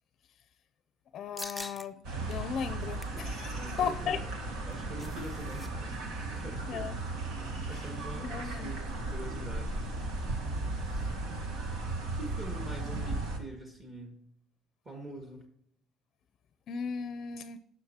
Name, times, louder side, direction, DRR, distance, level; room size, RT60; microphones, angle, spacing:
voice 1, 1.1-2.0 2.3-4.2 6.7-7.0 7.7-7.8 8.2-8.7 16.7-17.6, left 7 dB, 50° left, 12 dB, 0.5 m, -36 dB
sound 1, 1.4-1.9 2.3-2.4 2.8-3.2 4.5-5.7 6.0-6.1 6.4-6.7, left 1 dB, ahead, 0.6 m, -44 dB
sound 2, 2.0-13.4, right 2 dB, 80° right, 2.0 m, -36 dB
voice 2, 3.5-7.0 7.7-10.0 12.1-14.2 14.8-15.4, right 1 dB, 25° right, 2 dB, 1.9 m, -45 dB
17.5 x 6.3 x 2.8 m, 0.68 s
cardioid pair, 145°, 0 cm